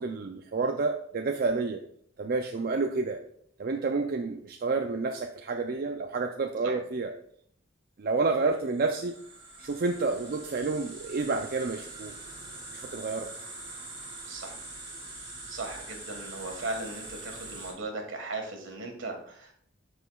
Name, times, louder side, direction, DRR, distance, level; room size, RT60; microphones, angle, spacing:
voice 1, 0.0-1.8 2.2-3.2 3.6-7.1 8.0-9.1 9.6-12.1 12.7-13.3, right 3 dB, 50° right, 4 dB, 0.5 m, -29 dB
sound 1, 8.6-17.7, right 2 dB, 25° right, 2.6 m, -43 dB
voice 2, 14.3-14.6 15.5-19.5, right 2 dB, 75° right, 3 dB, 1.7 m, -37 dB
13.0 x 5.0 x 2.3 m, 0.65 s
head